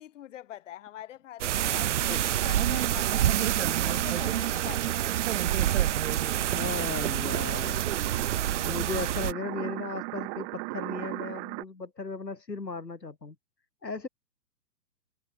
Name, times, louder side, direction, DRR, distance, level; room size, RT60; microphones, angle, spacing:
voice 1, 0.0-3.3 3.6-5.2, left 12 dB, 50° left, 6.1 m, -44 dB
sound 1, 1.4-9.3, right 12 dB, 45° right, 0.9 m, -27 dB
sound 2, 1.5-11.6, right 39 dB, 30° right, 3.3 m, -37 dB
sound 3, 2.9-8.0, right 7 dB, 65° right, 7.6 m, -49 dB
voice 2, 6.5-7.9 8.6-13.4 13.8-14.1, left 3 dB, 90° left, 4.0 m, -36 dB
figure-of-eight pair, 125°, 48 cm